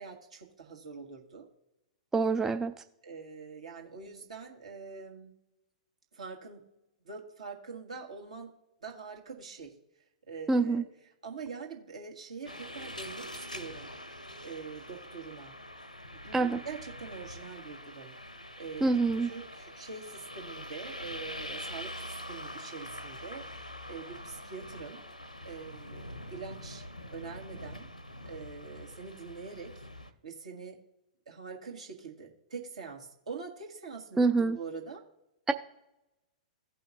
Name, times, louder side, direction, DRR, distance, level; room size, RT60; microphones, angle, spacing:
voice 1, 0.0-1.5 3.0-5.3 6.1-6.7 7.0-8.5 8.8-9.7 10.3-10.8 11.2-13.9 14.4-15.5 16.1-18.2 18.6-25.0 25.4-26.8 27.1-27.9 28.3-29.9 30.2-30.8 31.3-35.1, right 5 dB, 65° right, 1 dB, 1.9 m, -44 dB
voice 2, 2.1-2.7 10.5-10.8 16.3-16.6 18.8-19.3 34.2-34.6 35.5-35.6, right 3 dB, 10° right, 9 dB, 0.3 m, -26 dB
sound 1, 12.4-30.1, left 1 dB, 90° left, 0.8 m, -44 dB
16.0 x 5.6 x 2.7 m, 0.93 s
figure-of-eight pair, 105°, 4 cm